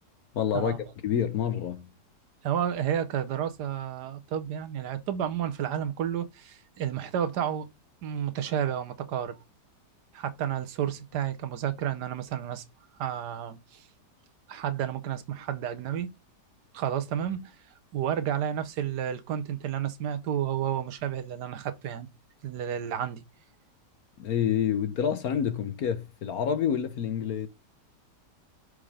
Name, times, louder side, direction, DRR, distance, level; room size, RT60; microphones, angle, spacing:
voice 1, 0.3-0.8 1.0-1.9 24.2-27.5, left 8 dB, 65° left, 1.2 m, -28 dB
voice 2, 2.4-7.7 8.0-9.4 10.1-12.6 13.0-13.9 14.5-16.1 16.7-17.5 17.9-22.1 22.4-23.2, right 9 dB, 75° right, 1.3 m, -31 dB
6.5 x 3.7 x 4.8 m
omnidirectional pair, 1.9 m